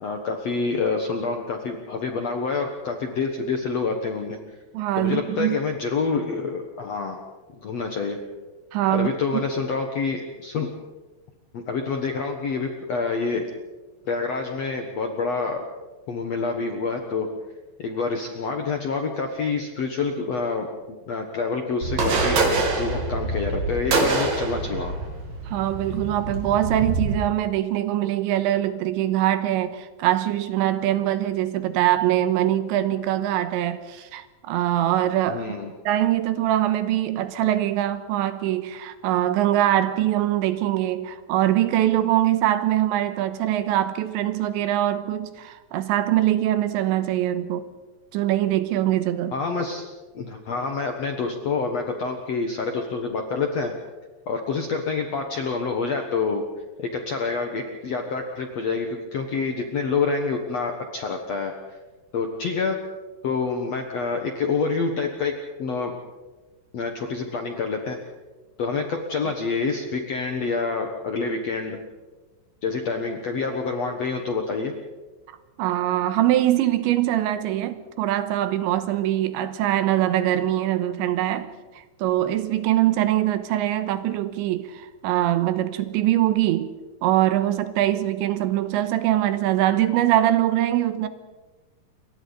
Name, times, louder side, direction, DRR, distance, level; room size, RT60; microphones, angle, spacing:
voice 1, 0.0-4.4 5.0-7.2 7.6-8.2 8.9-10.7 11.5-13.4 14.1-15.6 16.1-17.3 17.8-20.7 21.1-22.4 22.8-24.9 35.3-35.7 49.3-49.8 50.1-53.7 54.3-56.4 56.8-61.5 62.1-62.8 63.2-65.3 65.6-65.9 66.7-68.0 68.6-71.8 72.6-74.7, left 4 dB, 75° left, 3 dB, 1.5 m, -27 dB
voice 2, 4.7-5.6 8.7-9.1 25.5-35.5 35.9-47.7 48.1-49.3 75.6-81.5 82.0-86.7 87.0-91.1, right 13 dB, 90° right, 11 dB, 3.3 m, -23 dB
sound 1, 21.8-27.1, right 3 dB, 55° right, 4.6 m, -25 dB
28.5 x 24.0 x 4.1 m, 1.2 s
omnidirectional pair, 5.2 m